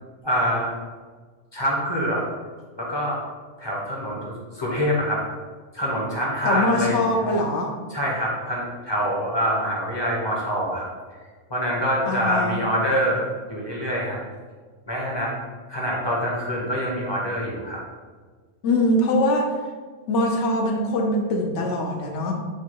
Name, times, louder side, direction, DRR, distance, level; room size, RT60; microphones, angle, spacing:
voice 1, 0.2-0.7 1.5-2.2 2.8-3.2 3.6-5.2 5.7-7.0 7.9-10.9 11.5-14.2 14.9-15.3 15.7-17.8, equal, 25° left, -4 dB, 0.7 m, -25 dB
voice 2, 6.4-7.7 12.1-12.7 18.6-19.5 20.1-22.3, left 1 dB, 65° left, 1 dB, 1.0 m, -22 dB
4.6 x 2.2 x 4.5 m, 1.5 s
omnidirectional pair, 1.3 m